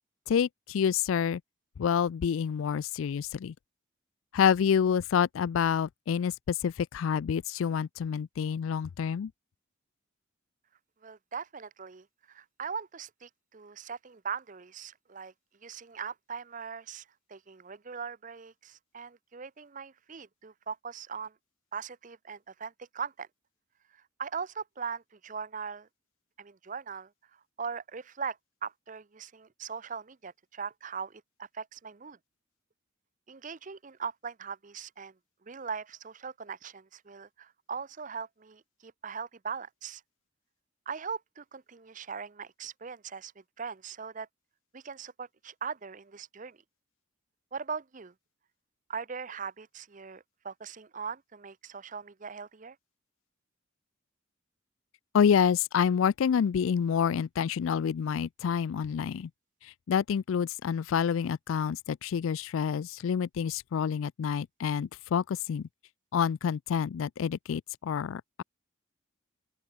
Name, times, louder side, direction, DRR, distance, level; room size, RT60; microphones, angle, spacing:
voice 1, 0.3-1.4 1.8-3.5 4.3-9.3 55.1-59.3 59.6-65.7 66.1-68.4, left 7 dB, 75° left, 0.3 m, -28 dB
voice 2, 11.0-15.3 15.6-21.3 21.7-23.3 23.9-25.9 26.4-32.2 33.3-35.1 35.4-40.0 40.9-44.3 44.7-46.6 47.5-48.1 48.9-52.8, right 6 dB, 40° right, 0.6 m, -40 dB
open air
head